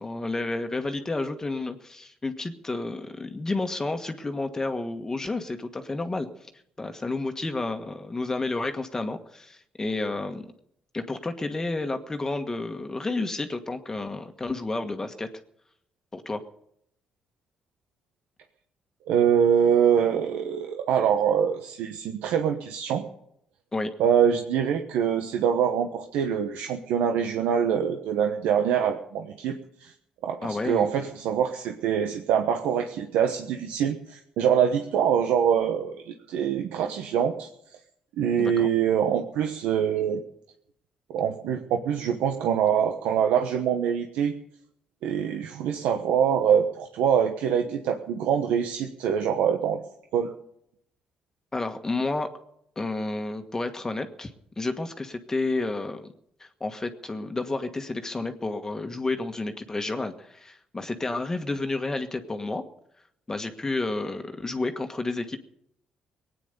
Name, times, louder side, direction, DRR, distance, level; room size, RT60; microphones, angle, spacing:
voice 1, 0.0-6.3 6.8-10.5 10.9-15.3 16.1-16.4 23.7-23.9 30.4-30.9 38.4-38.7 51.5-52.3 52.7-54.3 54.6-56.1 56.4-62.6 63.3-65.4, left 2 dB, 20° left, 6 dB, 1.5 m, -30 dB
voice 2, 19.1-23.1 24.0-29.9 30.2-37.5 38.2-40.2 41.1-44.3 45.0-49.8 50.1-50.3, right 8 dB, 90° right, 4 dB, 1.1 m, -24 dB
19.5 x 9.4 x 6.8 m, 0.74 s
cardioid pair, 85°, 3 cm